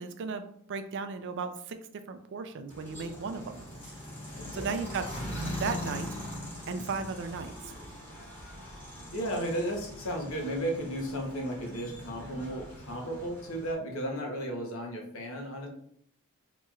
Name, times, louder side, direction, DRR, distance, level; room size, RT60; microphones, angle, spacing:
voice 1, 0.0-1.8 2.1-3.7 4.5-5.1 5.6-6.1 6.7-7.7, right 5 dB, 55° right, 8 dB, 0.4 m, -35 dB
sound 1, 2.7-13.7, left 1 dB, 10° left, 1.3 m, -41 dB
voice 2, 4.4-4.8 6.7-7.1 9.1-15.7, right 1 dB, 65° left, 1 dB, 0.9 m, -35 dB
4.2 x 2.9 x 2.3 m, 0.66 s
head